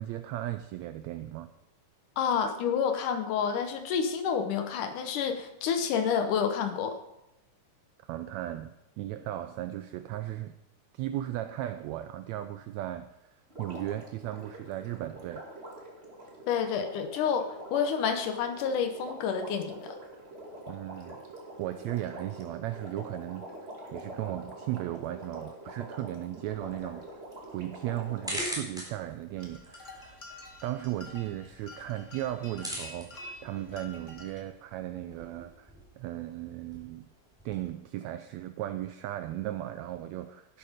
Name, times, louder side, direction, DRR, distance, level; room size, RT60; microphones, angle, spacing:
voice 1, 0.0-1.5 8.0-10.6 10.9-15.4 20.7-21.2 21.6-23.5 23.9-27.3 27.5-30.2 30.6-37.1 37.4-40.6, right 14 dB, 85° right, 10 dB, 1.6 m, -36 dB
voice 2, 2.2-7.0 16.5-20.0, left 7 dB, 75° left, 8 dB, 2.4 m, -29 dB
Water, 13.5-28.5 29.4-29.5, right 1 dB, 20° right, 2.1 m, -45 dB
sound 1, 26.4-37.7, equal, ahead, 3.9 m, -44 dB
sound 2, 29.4-34.4, left 2 dB, 35° left, 1.2 m, -48 dB
12.5 x 11.5 x 5.0 m, 0.91 s
omnidirectional pair, 3.7 m